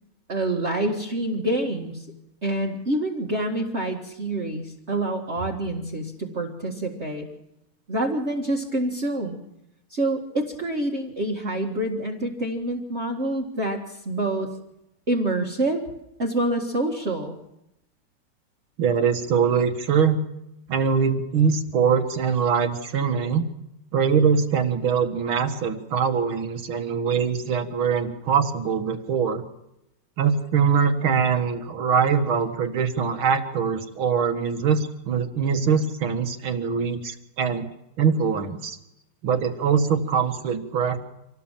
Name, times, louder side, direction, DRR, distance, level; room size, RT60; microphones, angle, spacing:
voice 1, 0.3-2.1 2.4-7.3 7.9-9.4 9.9-14.6 15.1-15.8 16.2-17.4, right 1 dB, 35° right, 0 dB, 2.1 m, -27 dB
voice 2, 18.8-20.2 20.7-23.5 23.9-29.4 30.2-37.7 38.0-38.8 39.2-41.0, right 6 dB, 80° right, 7 dB, 2.5 m, -23 dB
26.5 x 18.5 x 7.5 m, 0.86 s
omnidirectional pair, 2.3 m